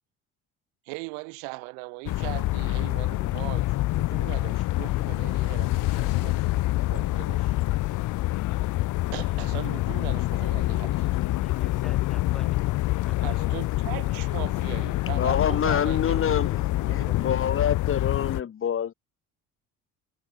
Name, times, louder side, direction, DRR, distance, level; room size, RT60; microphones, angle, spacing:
voice 1, 0.8-7.6 9.1-11.5 13.2-17.3, right 40 dB or more, 85° right, 2.4 m, -40 dB
sound 1, 2.1-18.4, left 17 dB, 65° left, 1.2 m, -26 dB
sound 2, 4.2-17.9, left 32 dB, 85° left, 7.8 m, -40 dB
voice 2, 11.4-13.6, equal, ahead, 4.8 m, -49 dB
voice 3, 15.1-16.5 16.9-18.9, left 8 dB, 40° left, 2.8 m, -26 dB
supercardioid pair, 95°, 33 cm